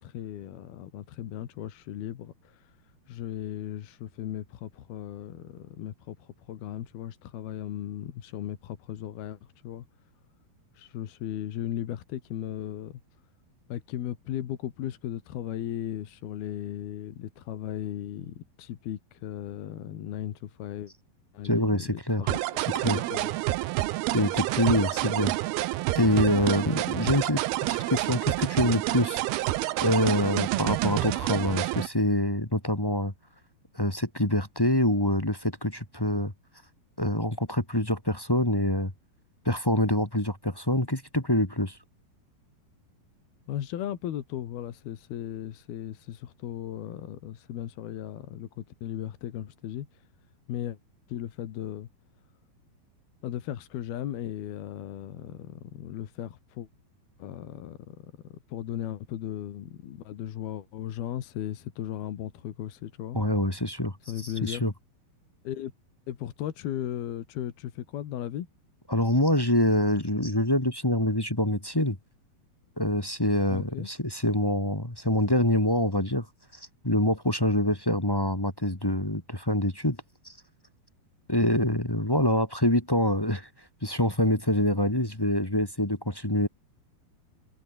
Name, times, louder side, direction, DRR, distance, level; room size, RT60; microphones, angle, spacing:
voice 1, 0.0-2.8 3.1-9.9 10.7-13.0 13.7-20.9 21.3-23.3 43.5-50.0 50.5-50.8 51.1-51.9 53.2-56.7 57.2-63.2 64.1-64.7 65.5-65.7 66.1-68.5 73.5-73.9, left 11 dB, 80° left, 3.7 m, -36 dB
voice 2, 21.4-22.2 22.8-23.0 24.1-25.3 25.9-27.4 27.7-29.2 29.8-33.1 33.7-36.3 37.0-38.9 39.4-41.8 63.1-63.9 64.4-64.7 68.9-72.0 72.8-76.2 76.8-80.0 80.2-80.3 81.3-83.5 83.8-86.5, left 1 dB, 10° left, 1.2 m, -25 dB
sound 1, 22.3-31.9, right 17 dB, 90° right, 2.8 m, -28 dB
omnidirectional pair, 4.4 m